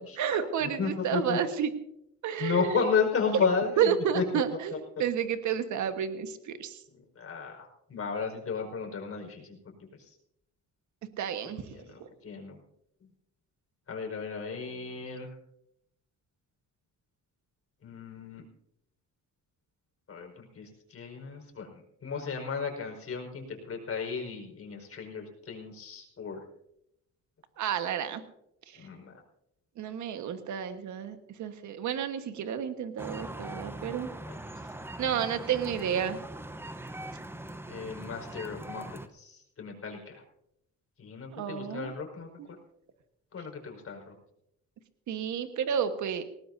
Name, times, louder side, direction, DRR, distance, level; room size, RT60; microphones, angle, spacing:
voice 1, 0.2-1.7 2.2-2.8 3.3-3.4 3.8-6.8 11.2-11.6 27.6-28.2 28.7-28.8 29.8-34.1 35.0-36.2 41.3-41.9 42.4-42.5 45.1-46.2, right 8 dB, 75° right, 8 dB, 1.5 m, -31 dB
voice 2, 0.8-1.4 2.4-4.2 7.1-9.7 11.8-12.6 13.9-15.3 17.8-18.4 20.1-21.7 22.0-26.4 28.8-29.1 34.3-34.4 37.7-38.8 39.1-40.2 41.0-42.3 43.3-44.1, left 5 dB, 50° left, 1 dB, 5.2 m, -33 dB
sound 1, 33.0-39.1, right 1 dB, 10° right, 0.9 m, -41 dB
19.5 x 18.5 x 2.7 m, 0.77 s
cardioid pair, 90°, 30 cm